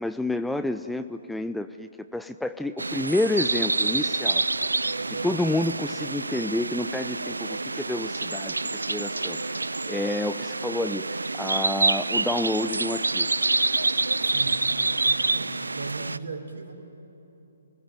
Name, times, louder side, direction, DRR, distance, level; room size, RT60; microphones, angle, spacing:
voice 1, 0.0-4.4 5.2-9.5 9.9-13.3, left 1 dB, ahead, 10 dB, 0.5 m, -29 dB
sound 1, 2.8-16.2, right 3 dB, 80° right, 0.6 m, -27 dB
voice 2, 4.9-5.4 14.2-14.6 14.9-16.7, right 4 dB, 65° right, 3 dB, 4.2 m, -37 dB
28.0 x 19.5 x 9.5 m, 2.8 s
figure-of-eight pair, 135°, 0 cm